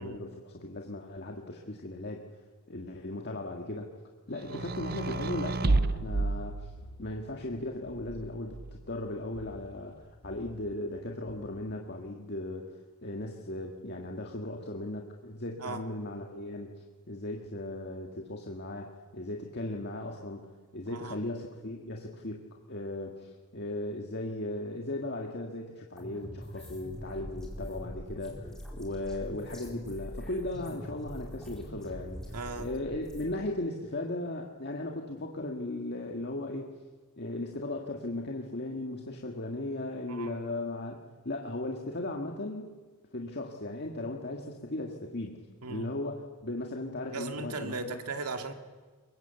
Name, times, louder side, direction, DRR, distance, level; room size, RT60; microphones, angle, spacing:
voice 1, 0.0-2.3 2.7-3.9 4.3-6.7 7.0-12.7 13.0-16.7 17.1-20.5 20.7-36.8 37.2-42.7 43.1-45.4 45.7-48.0, left 2 dB, 50° left, 1 dB, 1.8 m, -37 dB
sound 1, 4.5-7.2 8.1-9.0, right 2 dB, 45° right, 0.7 m, -31 dB
sound 2, 6.8-7.0 7.9-8.1 9.3-9.6 10.2-10.5 11.3-11.5, equal, 85° left, 6.3 m, -50 dB
voice 2, 20.9-21.2 32.3-32.7 40.1-40.4 45.6-45.9 47.1-48.5, right 3 dB, 90° right, 6 dB, 2.2 m, -38 dB
sound 3, 26.0-33.3, equal, 5° left, 4.2 m, -43 dB
23.0 x 22.0 x 8.2 m, 1.4 s
head